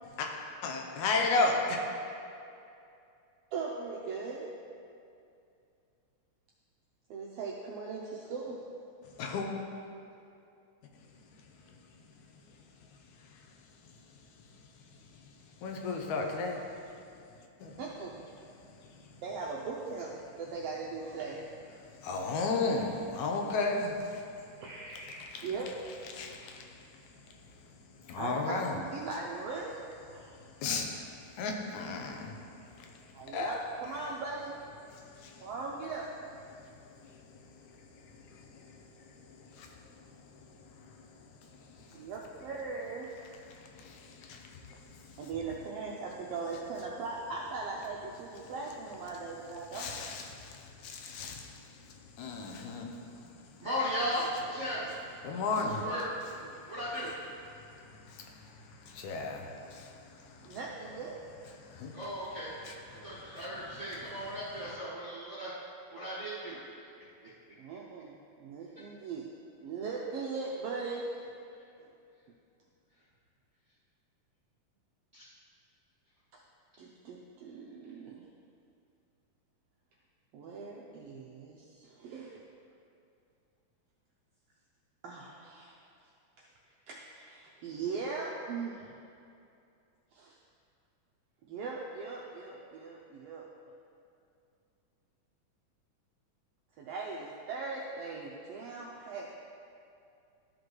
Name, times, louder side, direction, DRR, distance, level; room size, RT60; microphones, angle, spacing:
voice 1, 0.6-1.8 9.2-9.5 15.6-16.7 17.6-17.8 21.8-24.2 25.3-25.5 26.1-26.8 28.0-28.8 30.6-31.1 31.4-32.4 32.8-32.9 33.3-33.6 34.9-35.5 37.0-37.2 37.6-41.1 41.4-42.1 43.5-45.2 49.7-53.1 55.2-55.9 56.6-56.7 57.6-60.6 61.6-62.0 63.0-63.1, left 3 dB, 80° left, 2 dB, 2.1 m, -35 dB
voice 2, 3.5-4.5 7.1-8.7 17.8-18.2 19.2-20.1 20.4-21.5 24.6-25.7 28.1-29.8 30.1-30.4 33.1-34.6 35.4-36.1 41.9-43.1 45.2-49.9 55.5-55.8 60.4-61.2 67.6-69.3 69.6-71.3 71.8-71.9 76.3-76.4 76.8-78.2 80.3-82.4 85.0-85.7 86.4-86.5 86.9-89.0 90.1-90.4 91.5-93.5 96.8-99.3, right 4 dB, 85° right, -2 dB, 1.4 m, -39 dB
voice 3, 53.6-54.9 55.6-56.1 56.7-57.1 61.9-65.5 65.9-66.6 67.2-67.3 68.7-68.9 70.0-70.2 71.5-71.6 75.1-75.2, equal, 45° right, -10 dB, 0.9 m, -36 dB
13.0 x 5.1 x 3.1 m, 2.6 s
omnidirectional pair, 3.4 m